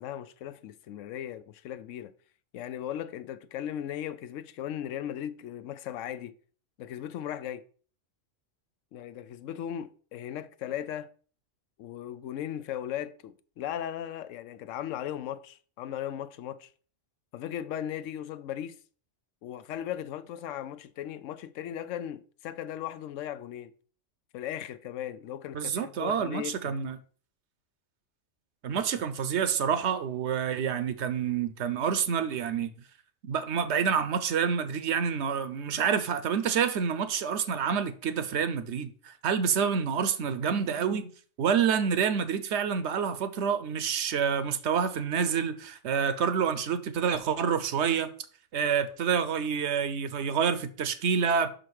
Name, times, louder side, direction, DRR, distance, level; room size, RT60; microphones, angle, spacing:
voice 1, 0.0-2.1 2.5-6.3 6.8-7.6 8.9-11.1 11.8-16.7 17.3-18.8 19.4-23.7 24.3-26.8 28.7-28.9, left 10 dB, 85° left, 0.9 m, -37 dB
voice 2, 25.5-27.0 28.6-32.7 33.2-41.1 41.4-48.1 48.5-51.5, right 7 dB, 70° right, 0.9 m, -28 dB
5.9 x 5.1 x 4.7 m
omnidirectional pair, 1.3 m